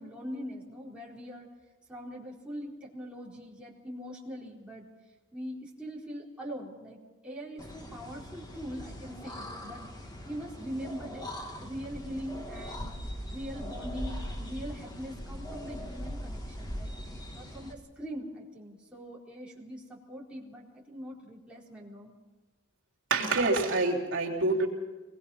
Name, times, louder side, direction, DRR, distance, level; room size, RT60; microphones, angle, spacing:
voice 1, 0.0-1.5 1.9-4.9 5.3-9.8 10.2-11.3 11.6-13.0 13.3-16.9 17.3-22.1, equal, 5° right, -5 dB, 4.2 m, -42 dB
sound 1, 7.6-17.7, equal, 20° left, 2.0 m, -40 dB
voice 2, 23.1-24.7, right 3 dB, 65° right, -2 dB, 3.5 m, -26 dB
25.5 x 20.0 x 5.7 m, 1.2 s
head